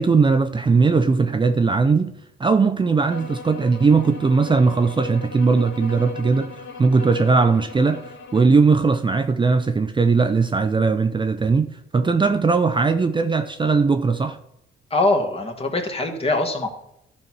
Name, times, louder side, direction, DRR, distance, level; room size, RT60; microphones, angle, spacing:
voice 1, 0.0-2.1 2.4-14.4, right 4 dB, 25° right, 0.6 m, -19 dB
sound 1, 3.1-8.6, left 3 dB, 80° left, 2.0 m, -38 dB
voice 2, 14.9-16.7, left 2 dB, 30° left, 1.9 m, -22 dB
12.0 x 4.3 x 6.2 m
cardioid pair, 90°, 20 cm